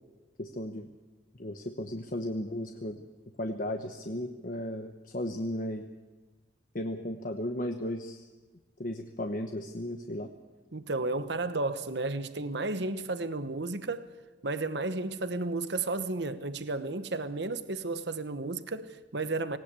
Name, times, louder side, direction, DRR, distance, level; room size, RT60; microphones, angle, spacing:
voice 1, 0.4-0.9 1.3-3.0 3.4-5.9 6.7-8.3 8.8-10.3, left 1 dB, 45° left, 1.1 m, -35 dB
voice 2, 10.7-14.1 14.4-19.6, right 3 dB, 65° right, 1.1 m, -33 dB
18.5 x 18.5 x 8.3 m
head